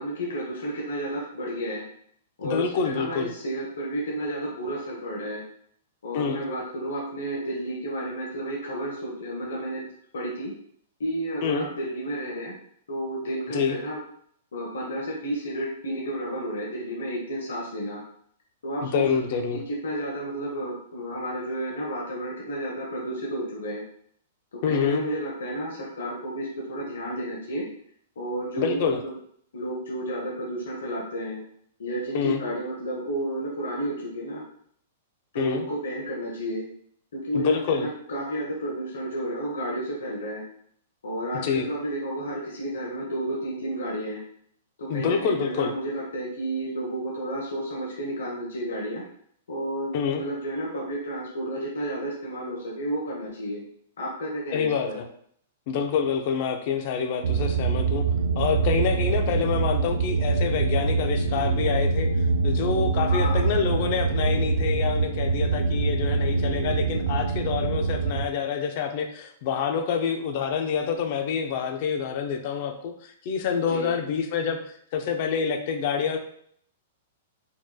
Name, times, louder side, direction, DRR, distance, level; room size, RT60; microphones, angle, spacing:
voice 1, 0.0-1.8 2.4-5.4 6.0-9.9 10.1-10.5 11.0-12.5 12.9-14.0 14.5-18.0 18.6-19.0 19.3-23.8 24.5-27.7 28.2-29.1 29.5-31.4 31.8-34.4 35.3-36.7 37.1-40.4 41.0-44.2 44.8-49.0 49.5-53.6 54.0-55.0 63.1-63.4 73.6-73.9, right 1 dB, 90° left, -4 dB, 1.0 m, -31 dB
voice 2, 2.4-3.3 6.1-6.4 11.4-11.7 13.5-13.8 18.8-19.6 24.6-25.0 28.6-29.0 32.1-32.4 35.4-35.6 37.3-37.9 41.4-41.7 44.9-45.7 49.9-50.2 54.5-55.0 55.7-58.1 58.4-62.1 62.4-74.6 74.9-76.2, left 6 dB, 45° left, 5 dB, 0.5 m, -27 dB
sound 1, 57.2-68.3, right 4 dB, 80° right, 0.3 m, -24 dB
4.4 x 3.0 x 2.3 m, 0.64 s
hypercardioid pair, 155°, 0 cm